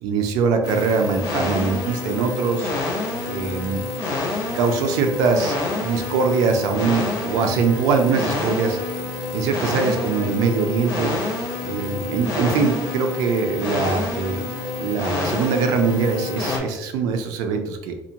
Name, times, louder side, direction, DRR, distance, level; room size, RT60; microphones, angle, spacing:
voice 1, 0.0-2.7 3.2-3.9 4.5-8.8 9.3-11.2 11.6-14.4 14.8-17.9, right 5 dB, 80° right, 5 dB, 0.4 m, -22 dB
sound 1, 0.6-16.6, left 2 dB, 75° left, 0.6 m, -28 dB
2.6 x 2.1 x 2.8 m, 0.95 s
cardioid pair, 175°, 6 cm